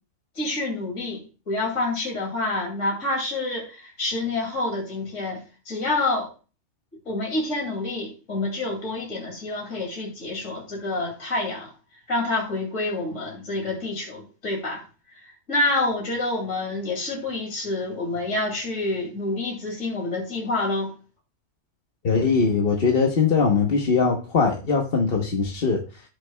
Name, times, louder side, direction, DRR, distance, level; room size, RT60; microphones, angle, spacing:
voice 1, 0.4-6.3 7.1-11.7 12.1-14.8 15.5-20.9, left 2 dB, 70° left, -1 dB, 2.8 m, -27 dB
voice 2, 22.0-26.0, left 5 dB, 50° left, 1 dB, 1.2 m, -21 dB
16.0 x 6.6 x 2.2 m, 0.34 s
omnidirectional pair, 1.3 m